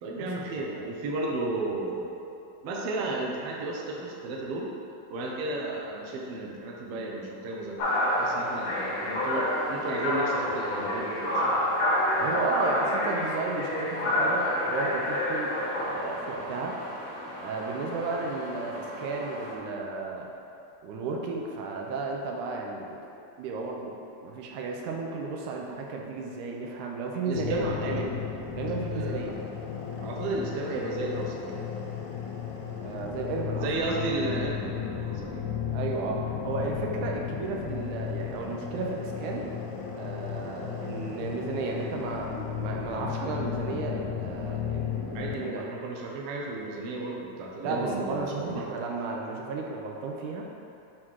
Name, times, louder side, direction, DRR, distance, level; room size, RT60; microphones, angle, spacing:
voice 1, 0.0-2.2 2.6-4.7 5.1-11.7 27.2-27.8 28.1-28.2 28.9-29.3 30.0-31.6 33.5-35.4 45.1-48.7, right 2 dB, 70° right, -2 dB, 1.5 m, -33 dB
voice 2, 0.6-0.9 12.2-16.8 17.4-20.3 20.8-23.0 23.4-28.1 28.6-29.4 32.8-33.7 35.7-39.5 40.0-45.7 47.6-50.5, right 3 dB, 90° right, 0 dB, 2.2 m, -33 dB
sound 1, 7.8-19.6, left 1 dB, 75° left, 2.2 m, -29 dB
sound 2, 27.3-45.4, left 8 dB, 90° left, 2.1 m, -34 dB
6.5 x 3.7 x 4.6 m, 2.7 s
omnidirectional pair, 3.4 m